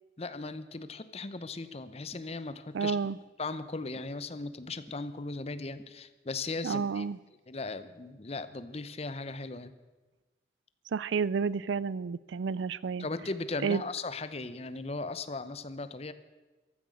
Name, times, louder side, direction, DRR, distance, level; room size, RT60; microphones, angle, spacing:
voice 1, 0.2-3.0 3.4-7.1 7.5-9.7 13.0-16.1, left 3 dB, 35° left, 12 dB, 0.7 m, -37 dB
sound 1, 2.1-2.3 3.0-3.2 4.0-4.1 4.9-5.0 5.8-5.9 6.7-6.9, equal, 5° left, 1.0 m, -52 dB
voice 2, 2.7-3.2 6.6-7.2 10.9-13.1 13.6-13.8, right 5 dB, 75° right, 21 dB, 0.4 m, -30 dB
15.0 x 13.0 x 6.4 m, 1.2 s
head